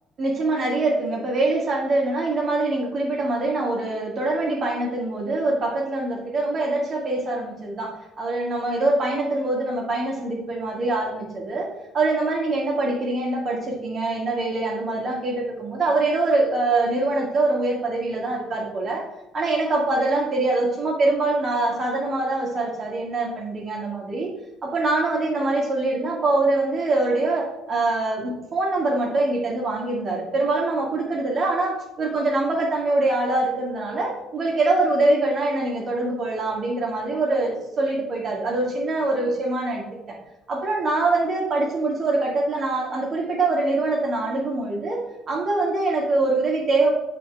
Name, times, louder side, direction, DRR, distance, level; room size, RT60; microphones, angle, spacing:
voice 1, 0.2-11.7 11.9-19.0 19.3-24.3 24.6-39.8 40.5-46.9, right 2 dB, 50° right, -1 dB, 1.9 m, -24 dB
7.8 x 4.2 x 3.5 m, 0.94 s
hypercardioid pair, 55°, 0 cm